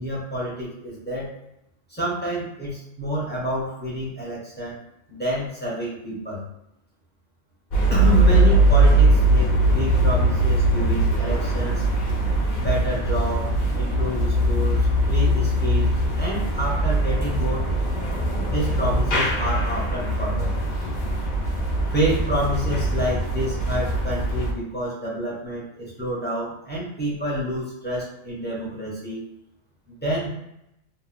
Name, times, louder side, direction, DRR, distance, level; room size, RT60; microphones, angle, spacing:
voice 1, 0.0-1.3 1.9-4.8 5.1-6.4 7.9-11.8 12.6-17.6 18.5-20.7 21.9-29.2 30.0-30.3, right 1 dB, 10° left, -7 dB, 0.7 m, -28 dB
sound 1, 7.7-24.5, right 1 dB, 45° left, 0.6 m, -21 dB
2.9 x 2.3 x 2.5 m, 0.82 s
omnidirectional pair, 1.3 m